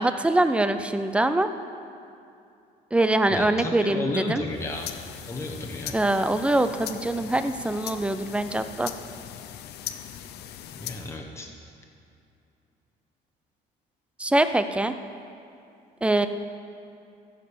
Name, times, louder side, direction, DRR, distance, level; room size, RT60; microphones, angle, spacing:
voice 1, 0.0-1.5 2.9-4.4 5.9-8.9 14.2-14.9 16.0-16.3, right 1 dB, 5° right, 10 dB, 0.5 m, -23 dB
voice 2, 3.3-4.9 5.3-6.0 10.8-11.5, left 2 dB, 15° left, 0 dB, 1.2 m, -32 dB
sound 1, 4.5-11.2, left 11 dB, 75° left, 0.6 m, -40 dB
14.5 x 5.3 x 6.9 m, 2.6 s
cardioid pair, 110°, 17 cm